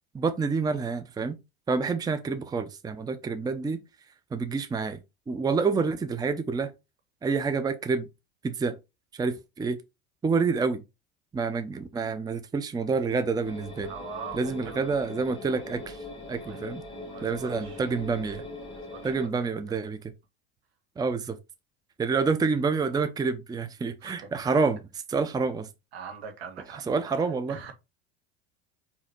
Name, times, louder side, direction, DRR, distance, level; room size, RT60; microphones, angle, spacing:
voice 1, 0.1-1.4 1.7-3.8 4.3-5.0 5.3-6.7 7.2-8.1 8.4-8.8 9.2-9.8 10.2-10.8 11.3-13.9 14.3-16.0 16.3-16.8 17.2-18.4 19.0-20.1 21.0-21.4 22.0-25.7 26.9-27.6, right 4 dB, 10° right, 0.6 m, -28 dB
sound 1, 13.4-19.3, left 2 dB, 15° left, 2.3 m, -41 dB
voice 2, 13.8-14.9 16.4-16.6 17.1-17.9 18.7-19.5 24.0-24.6 25.9-27.7, right 6 dB, 75° right, 1.3 m, -43 dB
4.0 x 2.8 x 4.4 m
hypercardioid pair, 75°, 31 cm